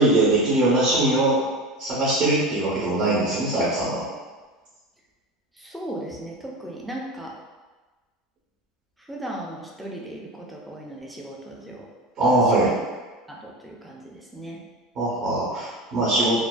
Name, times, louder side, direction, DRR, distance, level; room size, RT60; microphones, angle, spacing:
voice 1, 0.0-1.5 1.8-4.0 12.2-12.7 15.0-16.4, right 2 dB, 40° right, -7 dB, 0.7 m, -21 dB
voice 2, 5.5-7.4 9.0-11.9 12.3-12.7 13.3-14.6, right 1 dB, 5° right, -2 dB, 0.3 m, -37 dB
2.4 x 2.3 x 2.2 m, 1.3 s
cardioid pair, 150°, 0 cm